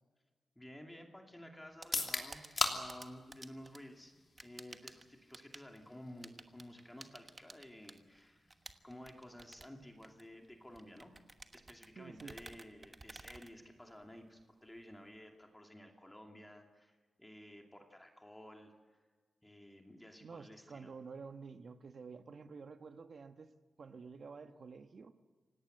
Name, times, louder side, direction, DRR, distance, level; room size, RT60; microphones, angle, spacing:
voice 1, 0.6-4.1 4.4-8.5 8.8-11.1 11.5-18.7 19.4-20.9, left 1 dB, 10° left, 2.4 m, -53 dB
sound 1, 1.6-14.2, right 3 dB, 30° right, 1.2 m, -55 dB
sound 2, 1.8-15.6, left 3 dB, 35° left, 3.0 m, -46 dB
voice 2, 12.0-12.4 20.2-23.5 23.8-25.1, right 5 dB, 55° right, 1.2 m, -50 dB
26.5 x 18.0 x 8.0 m
wide cardioid pair, 105°, 0 cm